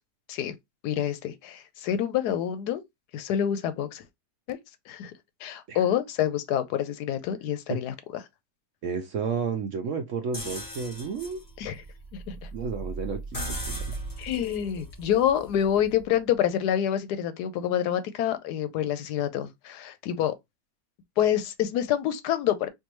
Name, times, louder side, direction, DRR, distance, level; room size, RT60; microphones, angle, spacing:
voice 1, 0.8-2.8 3.1-4.0 4.5-4.6 4.9-5.1 5.4-8.2 11.6-11.8 12.3-12.5 14.2-20.3 21.2-22.7, left 10 dB, 80° left, 1.1 m, -27 dB
voice 2, 8.8-11.4 12.5-13.2 13.5-13.8, right 5 dB, 65° right, 0.8 m, -31 dB
sound 1, 10.3-16.1, right 2 dB, 25° left, 0.4 m, -38 dB
4.5 x 2.6 x 2.9 m
omnidirectional pair, 1.8 m